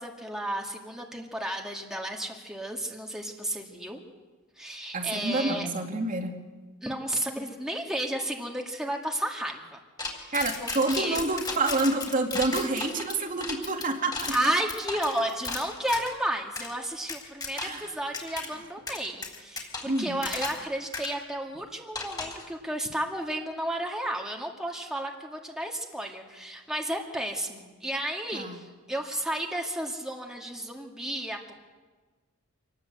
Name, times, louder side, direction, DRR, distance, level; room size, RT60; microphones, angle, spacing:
voice 1, 0.0-4.0 4.6-5.7 6.8-9.8 10.1-10.4 10.6-11.2 14.3-31.5, right 1 dB, 5° right, 0 dB, 2.1 m, -32 dB
voice 2, 4.9-6.3 10.3-14.3 17.6-17.9 19.8-20.2 28.3-28.6, right 2 dB, 40° right, 3 dB, 2.4 m, -28 dB
sound 1, 10.0-16.1 16.6-16.7 17.1-17.9 18.1-18.5 18.9-20.7 20.9-21.1 21.9-22.5, left 3 dB, 20° left, 3.7 m, -35 dB
26.5 x 19.0 x 7.9 m, 1.3 s
head